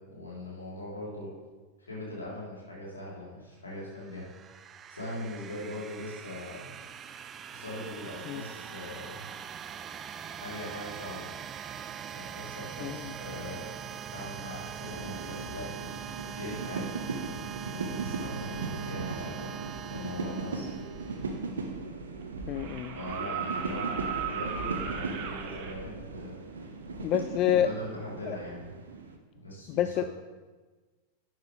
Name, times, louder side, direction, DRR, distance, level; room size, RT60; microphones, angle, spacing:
voice 1, 0.1-1.3 1.8-4.2 4.9-6.7 7.5-9.2 10.3-11.3 12.1-13.7 14.1-15.7 16.3-17.4 17.7-19.5 19.9-20.7 22.9-26.4 27.6-28.7 29.4-30.1, left 1 dB, 75° left, -5 dB, 3.5 m, -41 dB
sound 1, 3.8-21.5, right 8 dB, 25° right, 0.5 m, -42 dB
voice 2, 12.8-13.1 22.5-23.0 27.0-27.7 28.3-28.4 29.7-30.0, left 11 dB, 35° left, 10 dB, 0.3 m, -28 dB
sound 2, 14.8-29.2, right 4 dB, 70° right, 1.0 m, -38 dB
sound 3, 21.4-21.5 22.5-25.7 27.5-27.6, right 6 dB, 45° right, 1.2 m, -36 dB
12.0 x 9.4 x 3.3 m, 1.3 s
figure-of-eight pair, 90°, 0 cm